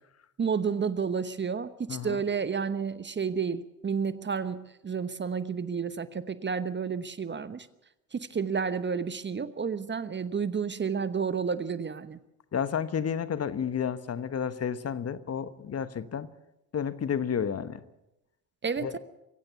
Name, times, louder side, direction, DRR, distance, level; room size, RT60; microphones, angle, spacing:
voice 1, 0.4-7.7 8.1-12.2 18.6-19.0, right 6 dB, 25° right, 14 dB, 1.0 m, -31 dB
voice 2, 1.9-2.2 12.5-16.3 16.7-17.8 18.8-19.0, left 7 dB, 35° left, 13 dB, 1.2 m, -31 dB
24.0 x 16.0 x 7.0 m, 0.88 s
hypercardioid pair, 65°, 44 cm